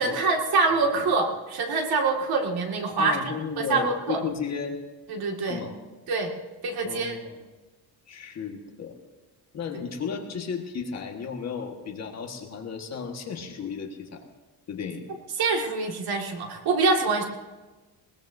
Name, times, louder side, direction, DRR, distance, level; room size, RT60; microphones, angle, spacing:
voice 1, 0.0-4.2 5.1-5.6 6.1-6.3 6.6-7.2 15.4-17.2, right 4 dB, 65° right, 2 dB, 2.1 m, -25 dB
voice 2, 0.7-1.0 3.0-4.8 5.4-5.8 6.8-7.4 8.1-9.0 9.5-14.2 14.7-15.0, left 6 dB, 40° left, 2 dB, 1.6 m, -34 dB
20.5 x 19.5 x 2.7 m, 1.2 s
cardioid pair, 170°, 40 cm